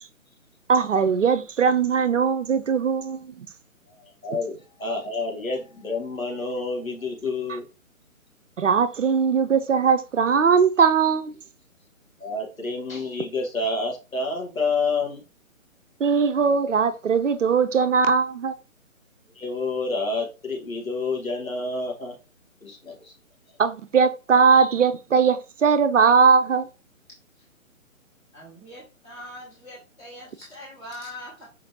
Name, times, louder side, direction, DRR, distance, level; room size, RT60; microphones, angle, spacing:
voice 1, 0.7-3.5 8.6-11.4 16.0-18.5 23.6-26.7, right 6 dB, 60° right, 0.5 m, -20 dB
voice 2, 4.0-7.6 12.2-15.2 19.3-22.1 22.6-23.1, left 3 dB, 75° left, 1.8 m, -29 dB
voice 3, 28.3-31.5, left 1 dB, 10° left, 1.0 m, -42 dB
5.0 x 2.8 x 3.0 m
figure-of-eight pair, 140°, 41 cm